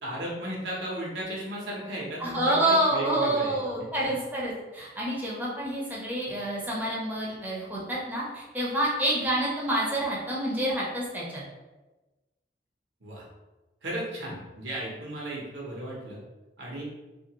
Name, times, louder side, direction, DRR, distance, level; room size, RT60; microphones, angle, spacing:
voice 1, 0.0-3.5 4.0-4.1 13.0-13.2 13.8-16.2 16.6-16.8, right 1 dB, 90° right, -4 dB, 1.0 m, -35 dB
voice 2, 2.2-11.4, right 1 dB, 10° right, -5 dB, 0.6 m, -28 dB
2.8 x 2.5 x 2.9 m, 1.1 s
head